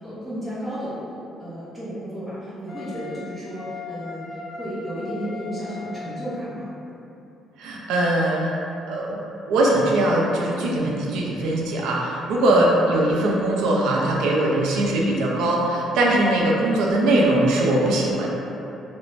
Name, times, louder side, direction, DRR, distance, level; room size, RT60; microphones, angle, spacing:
voice 1, 0.0-6.7 12.5-13.0, equal, 20° right, -10 dB, 0.7 m, -33 dB
Wind instrument woodwind instrument, 2.7-6.4, left 5 dB, 65° left, 0.4 m, -38 dB
voice 2, 7.6-8.6 8.9-9.2 9.5-18.3, right 1 dB, 90° right, -2 dB, 0.4 m, -21 dB
2.5 x 2.1 x 3.1 m, 2.8 s
cardioid pair, 120°, 0 cm